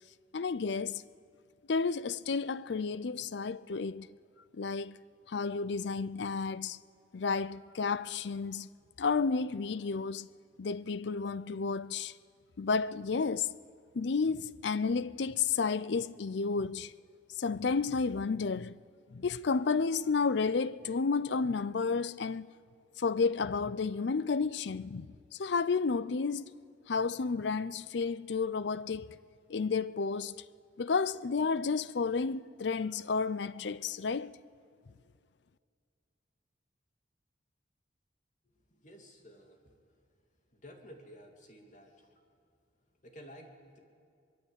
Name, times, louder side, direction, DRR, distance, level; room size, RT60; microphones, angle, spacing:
voice 1, 0.3-1.0 1.7-4.1 4.5-5.0 5.3-6.8 7.1-8.7 9.0-10.3 10.6-12.1 12.6-13.5 13.9-16.9 17.4-18.8 19.1-22.5 23.0-25.1 25.4-26.5 26.9-29.2 29.5-30.4 30.8-34.3, left 4 dB, 65° left, 0.5 m, -31 dB
voice 2, 38.4-40.0 40.5-42.2 43.0-43.8, equal, 40° left, 2.6 m, -53 dB
24.0 x 21.0 x 8.2 m
head